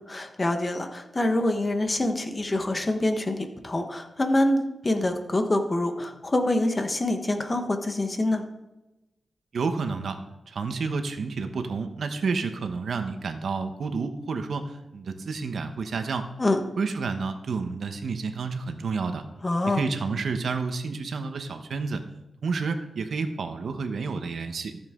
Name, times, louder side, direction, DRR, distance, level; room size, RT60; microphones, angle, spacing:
voice 1, 0.1-8.4 16.4-16.6 19.4-19.8, left 1 dB, 30° left, 6 dB, 1.2 m, -25 dB
voice 2, 9.5-10.2 10.5-16.3 16.8-19.3 19.6-22.0 22.4-24.8, right 4 dB, 70° right, 7 dB, 1.0 m, -30 dB
13.5 x 7.3 x 3.8 m, 0.98 s
wide cardioid pair, 95°, 0 cm